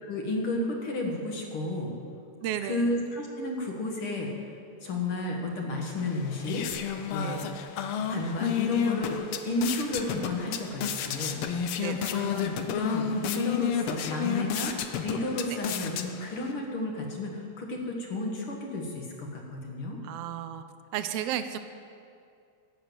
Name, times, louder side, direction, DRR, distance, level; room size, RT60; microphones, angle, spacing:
voice 1, 0.0-1.9 2.6-4.3 4.8-6.6 7.1-7.4 8.1-9.2 9.5-11.4 12.1-14.8 15.0-20.0, left 2 dB, 50° left, 1 dB, 2.3 m, -32 dB
voice 2, 2.4-2.9 7.2-7.7 11.8-12.1 20.0-20.6 20.9-21.6, right 10 dB, 85° right, 10 dB, 1.4 m, -33 dB
sound 1, 6.0-16.5, left 8 dB, 80° left, 1.2 m, -32 dB
12.5 x 8.7 x 7.6 m, 2.4 s
omnidirectional pair, 3.3 m